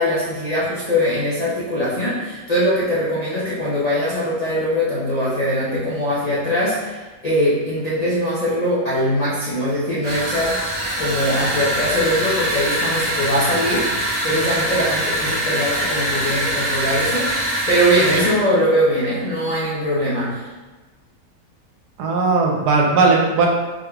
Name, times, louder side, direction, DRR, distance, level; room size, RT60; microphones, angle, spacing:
voice 1, 0.0-20.5, equal, 70° left, -9 dB, 0.3 m, -21 dB
sound 1, 10.0-18.4, right 1 dB, 60° right, 0.9 m, -23 dB
voice 2, 22.0-23.5, right 4 dB, 85° right, 0 dB, 1.2 m, -17 dB
3.6 x 2.3 x 3.2 m, 1.3 s
omnidirectional pair, 1.7 m